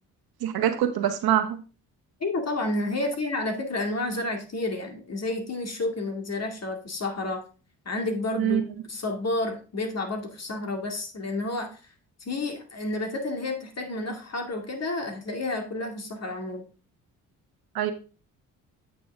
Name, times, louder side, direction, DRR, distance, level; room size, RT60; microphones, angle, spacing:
voice 1, 0.4-1.6 8.4-8.6 17.7-17.9, right 11 dB, 65° right, 8 dB, 1.3 m, -24 dB
voice 2, 2.2-7.4 7.9-11.8 12.2-16.6, left 2 dB, 40° left, 4 dB, 2.4 m, -30 dB
8.8 x 6.1 x 3.6 m, 0.35 s
supercardioid pair, 55°, 39 cm